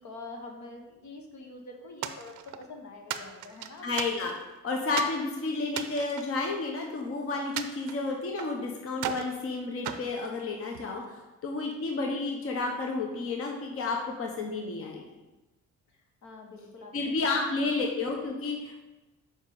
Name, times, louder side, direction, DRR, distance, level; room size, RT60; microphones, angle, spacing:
voice 1, 0.0-3.9 15.9-17.3, left 3 dB, 70° left, 2 dB, 1.3 m, -45 dB
sound 1, 2.0-2.7 3.1-4.5 5.0-5.2 5.7-7.0 7.6-8.6 9.0-9.3 9.8-10.9, right 9 dB, 90° right, 0.5 m, -37 dB
voice 2, 3.8-4.3 4.6-15.0 16.9-18.8, left 3 dB, 50° left, 1 dB, 1.0 m, -31 dB
7.1 x 4.9 x 4.0 m, 1.1 s
cardioid pair, 90°, 30 cm